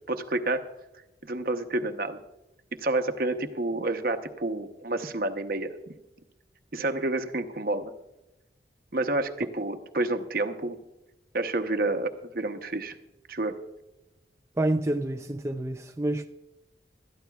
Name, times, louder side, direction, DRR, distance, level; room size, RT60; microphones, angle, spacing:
voice 1, 0.1-0.6 1.2-2.2 2.8-5.9 6.7-7.9 8.9-10.8 11.3-13.0 13.3-13.6, right 2 dB, 50° right, 7 dB, 0.9 m, -29 dB
voice 2, 14.6-16.3, right 1 dB, 15° right, 5 dB, 0.4 m, -28 dB
20.5 x 13.0 x 2.3 m, 0.96 s
head